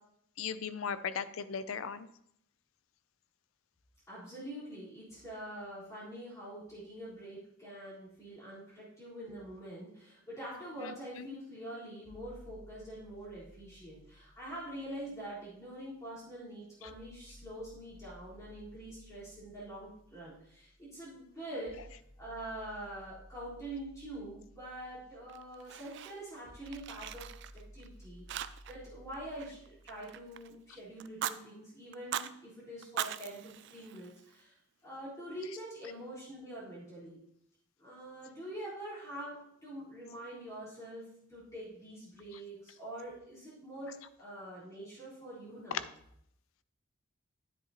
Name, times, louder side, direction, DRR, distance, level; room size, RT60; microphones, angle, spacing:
voice 1, 0.4-2.1 10.8-11.3 16.8-16.9 45.7-45.8, left 7 dB, 85° left, 14 dB, 0.5 m, -37 dB
voice 2, 4.1-34.6 34.8-37.2 37.8-45.9, right 1 dB, 15° left, -10 dB, 3.8 m, -45 dB
sound 1, 12.0-16.0 16.8-30.9, equal, 40° right, 2.2 m, -57 dB
Fire, 25.3-26.4 26.7-27.9 28.3-28.9 29.1-30.5 31.0-31.4 31.9-32.3 32.8-34.4, right 10 dB, 60° right, 0.3 m, -40 dB
9.8 x 7.8 x 2.9 m, 0.72 s
head